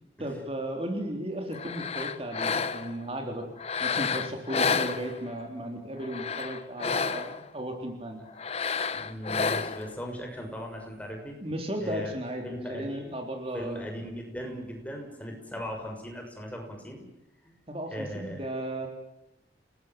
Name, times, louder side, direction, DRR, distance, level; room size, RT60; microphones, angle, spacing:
voice 1, 0.2-3.5 3.8-8.2 11.4-13.8 14.4-14.6 17.7-18.9, right 1 dB, 35° right, 3 dB, 3.6 m, -35 dB
sound 1, 1.5-3.0 3.6-5.5 6.0-7.5 8.4-9.9, left 5 dB, 35° left, 1.0 m, -30 dB
voice 2, 8.9-11.4 11.8-12.1 12.4-13.2 13.5-17.0 17.4-17.5 17.9-18.4, equal, 10° left, 1 dB, 6.5 m, -38 dB
30.0 x 20.0 x 7.5 m, 0.88 s
head